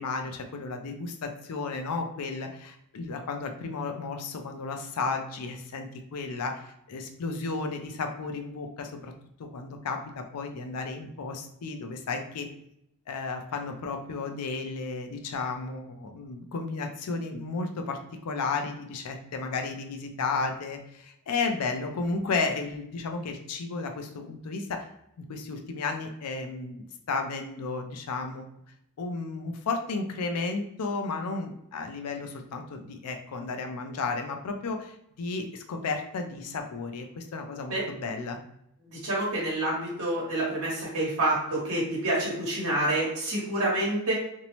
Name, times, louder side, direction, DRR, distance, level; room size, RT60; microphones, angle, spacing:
voice 1, 0.0-9.1 9.4-12.5 13.1-24.9 25.3-28.4 29.0-38.4, left 4 dB, 90° left, 5 dB, 0.4 m, -33 dB
voice 2, 38.8-44.1, right 1 dB, 70° right, -5 dB, 1.0 m, -28 dB
2.6 x 2.0 x 2.9 m, 0.78 s
head